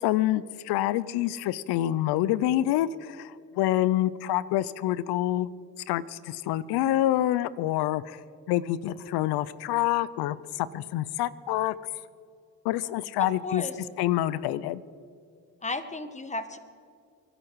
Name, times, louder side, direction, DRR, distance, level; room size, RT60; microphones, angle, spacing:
voice 1, 0.0-5.5 5.9-8.2 8.5-11.8 12.6-13.6 14.0-14.8, left 14 dB, 80° left, 19 dB, 0.6 m, -27 dB
voice 2, 13.2-13.8 15.6-16.6, left 2 dB, 20° left, 10 dB, 1.4 m, -33 dB
24.5 x 11.0 x 4.7 m, 2.3 s
supercardioid pair, 55°, 38 cm